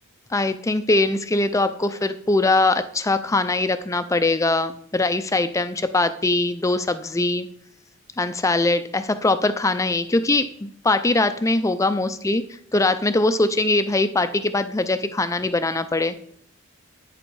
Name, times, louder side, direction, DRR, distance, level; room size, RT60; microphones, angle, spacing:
voice 1, 0.3-7.5 8.2-12.4 12.7-16.2, left 2 dB, 15° left, 11 dB, 0.4 m, -22 dB
9.2 x 7.9 x 4.6 m, 0.65 s
head